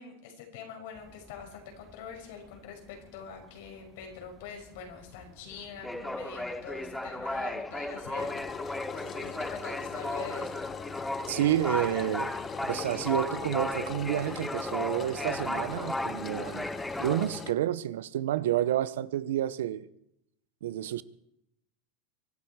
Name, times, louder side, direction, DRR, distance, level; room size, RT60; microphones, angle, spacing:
voice 1, 0.0-10.6, left 6 dB, 70° left, 5.5 m, -44 dB
sound 1, 1.0-2.2 2.5-2.7 3.0-17.2, left 1 dB, 5° left, 1.1 m, -36 dB
Engine, 8.2-17.5, left 7 dB, 30° left, 0.9 m, -40 dB
voice 2, 11.3-12.3 12.6-16.7 17.0-19.9 20.6-21.0, right 12 dB, 80° right, 0.8 m, -29 dB
24.0 x 12.5 x 4.7 m
hypercardioid pair, 105°, 0 cm